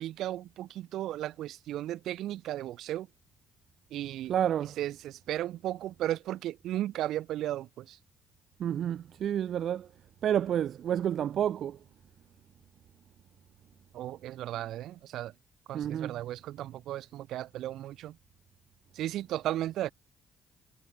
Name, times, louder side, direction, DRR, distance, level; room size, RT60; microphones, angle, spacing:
voice 1, 0.0-3.1 3.9-4.3 4.6-8.0 13.9-15.3 15.7-18.2 18.9-19.9, right 13 dB, 80° right, 4.1 m, -35 dB
voice 2, 4.3-4.8 8.6-9.9 10.2-11.8 15.7-16.2, right 10 dB, 65° right, 2.0 m, -29 dB
cardioid pair, 90°, 0 cm